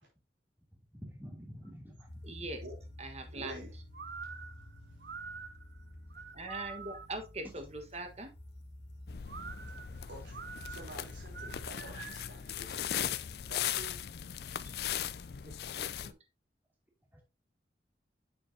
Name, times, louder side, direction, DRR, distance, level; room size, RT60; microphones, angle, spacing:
voice 1, 0.9-2.1 17.1-17.2, equal, 10° right, -1 dB, 2.7 m, -48 dB
sound 1, 2.1-11.7, left 1 dB, 80° left, 2.1 m, -51 dB
voice 2, 2.2-2.6 3.0-3.7 6.3-8.3 15.4-16.1, right 2 dB, 35° right, 6 dB, 1.4 m, -42 dB
voice 3, 3.3-3.7 10.1-10.4 10.7-13.2 13.5-14.0, equal, 90° right, -1 dB, 3.6 m, -48 dB
sound 2, 3.9-7.3 9.3-12.4, right 6 dB, 65° right, 0.6 m, -46 dB
sound 3, 9.1-16.1, left 9 dB, 60° left, 0.4 m, -38 dB
8.4 x 6.9 x 2.8 m, 0.27 s
head